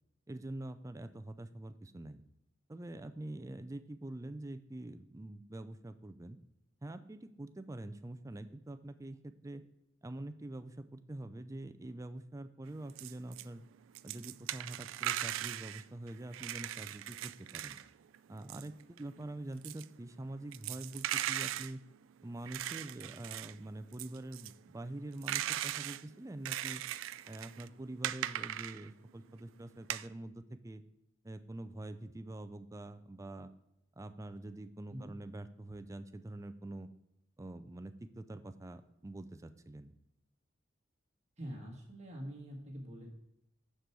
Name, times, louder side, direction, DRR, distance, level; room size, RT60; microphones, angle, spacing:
voice 1, 0.3-2.2 2.7-6.4 6.8-9.6 10.0-13.6 14.0-17.8 18.3-21.8 22.2-26.8 27.3-30.8 31.2-33.5 34.0-36.9 37.4-39.9, right 1 dB, 15° right, 10 dB, 0.4 m, -45 dB
sound 1, 12.7-13.5 13.7-17.9 18.1-29.1 29.6-30.1, right 13 dB, 85° right, 0.3 m, -39 dB
voice 2, 41.4-43.2, equal, 35° right, -1 dB, 1.5 m, -45 dB
6.8 x 6.5 x 4.7 m, 0.85 s
head